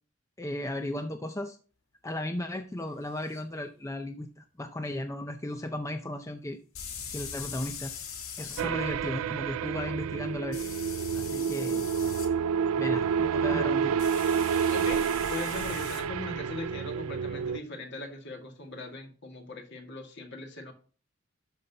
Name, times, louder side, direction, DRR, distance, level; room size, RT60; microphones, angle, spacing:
voice 1, 0.4-1.6 2.0-6.6 7.1-7.9 8.4-10.7 11.1-11.9 12.7-14.0, left 1 dB, 15° left, 6 dB, 0.5 m, -35 dB
sound 1, 3.3-3.4 6.7-8.6 10.5-12.3 14.0-16.0, left 7 dB, 75° left, 1.9 m, -41 dB
sound 2, 8.6-17.6, right 7 dB, 75° right, 0.4 m, -29 dB
voice 2, 13.5-13.9 14.7-20.7, left 1 dB, 55° left, 3 dB, 2.1 m, -40 dB
12.0 x 5.5 x 2.8 m, 0.39 s
head